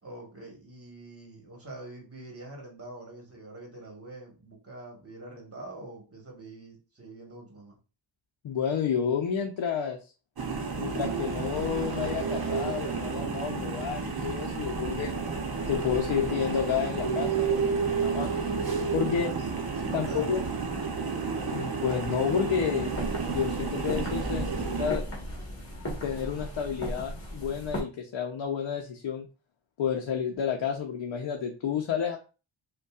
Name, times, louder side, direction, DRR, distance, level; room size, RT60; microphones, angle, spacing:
voice 1, 0.0-7.8 19.0-20.6, right 2 dB, 30° right, 0 dB, 1.2 m, -45 dB
voice 2, 8.4-10.0 10.8-15.1 15.7-18.3 18.9-19.5 19.9-20.4 21.4-22.9 23.3-25.0 26.0-29.3 29.8-32.2, left 7 dB, 70° left, 2 dB, 0.6 m, -30 dB
sound 1, 10.4-24.9, right 5 dB, 50° right, 0.8 m, -31 dB
sound 2, 22.8-27.8, equal, 30° left, 1.3 m, -36 dB
5.2 x 2.3 x 2.3 m, 0.33 s
wide cardioid pair, 170°, 46 cm